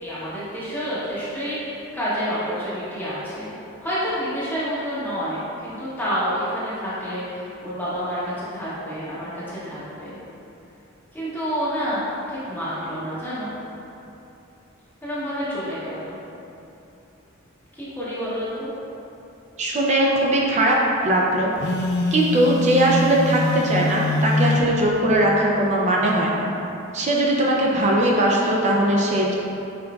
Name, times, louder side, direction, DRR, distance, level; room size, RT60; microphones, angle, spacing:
voice 1, 0.0-3.5 3.8-10.2 11.1-12.0 12.3-13.5 15.0-16.2 17.7-18.7, equal, 10° left, -11 dB, 0.8 m, -28 dB
voice 2, 19.6-20.8 21.0-21.5 22.1-26.5 26.9-29.3, right 1 dB, 35° right, -3 dB, 0.5 m, -20 dB
Telephone, 21.6-24.7, left 1 dB, 55° left, 0.4 m, -23 dB
5.8 x 3.8 x 2.3 m, 2.8 s
head